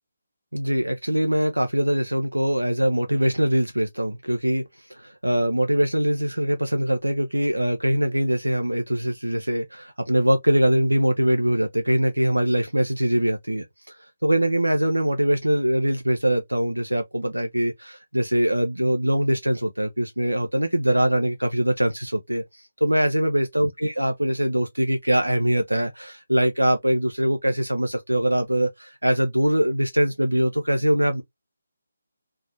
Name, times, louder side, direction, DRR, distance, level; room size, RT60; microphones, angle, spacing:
voice 1, 0.5-31.2, equal, 80° right, 0.3 m, -23 dB
2.4 x 2.0 x 2.6 m
figure-of-eight pair, 150°, 0 cm